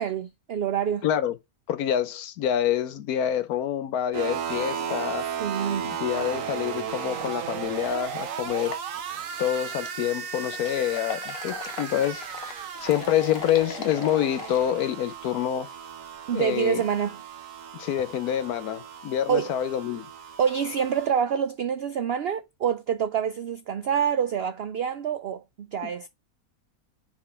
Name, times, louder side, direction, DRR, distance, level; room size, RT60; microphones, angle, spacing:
voice 1, 0.0-1.1 4.9-5.0 5.4-5.9 16.3-17.2 19.3-19.6 20.4-26.1, right 8 dB, 85° right, 0.5 m, -27 dB
voice 2, 1.0-1.4 1.7-5.3 5.8-8.8 9.4-12.3 12.8-15.7 16.3-16.8 17.7-20.1 25.8-26.1, left 10 dB, 80° left, 1.2 m, -27 dB
sound 1, 4.1-21.1, right 7 dB, 65° right, 1.1 m, -35 dB
sound 2, 8.6-21.2, left 6 dB, 45° left, 0.9 m, -44 dB
5.0 x 3.6 x 5.6 m
omnidirectional pair, 1.6 m